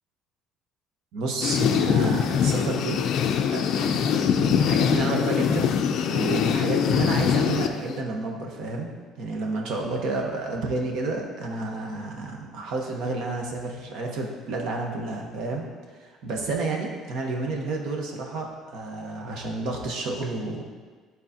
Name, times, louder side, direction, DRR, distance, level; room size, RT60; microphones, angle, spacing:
voice 1, 1.1-3.0 3.5-5.7 6.1-8.9 9.2-15.6 16.0-20.6, right 3 dB, 65° right, 0 dB, 1.1 m, -30 dB
sound 1, 1.4-8.0, left 7 dB, 50° left, 0.4 m, -23 dB
11.5 x 4.0 x 2.8 m, 1.5 s
cardioid pair, 170°, 0 cm